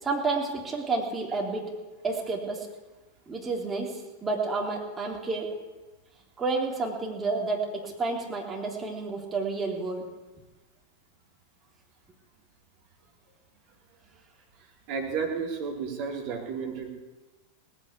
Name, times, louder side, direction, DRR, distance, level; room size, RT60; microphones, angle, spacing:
voice 1, 0.0-1.7 2.0-2.7 3.3-5.5 6.4-10.1, right 3 dB, 15° right, -1 dB, 3.5 m, -30 dB
voice 2, 14.9-16.9, right 5 dB, 45° right, 0 dB, 3.6 m, -32 dB
18.5 x 9.2 x 8.4 m, 1.2 s
figure-of-eight pair, 90°, 0 cm